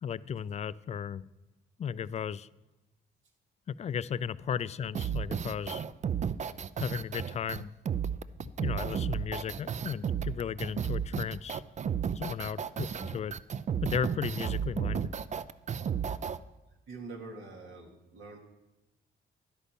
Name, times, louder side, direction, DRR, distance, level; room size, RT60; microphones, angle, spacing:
voice 1, 0.0-1.3 1.8-2.5 3.7-5.8 6.8-7.7 8.6-11.6 12.1-13.3 13.8-15.1, left 8 dB, 35° left, 18 dB, 0.3 m, -35 dB
sound 1, 4.9-16.4, right 8 dB, 35° right, 0.4 m, -33 dB
voice 2, 16.9-18.4, right 3 dB, 75° right, 1 dB, 2.3 m, -45 dB
10.5 x 8.5 x 5.3 m, 1.0 s
cardioid pair, 90°, 20 cm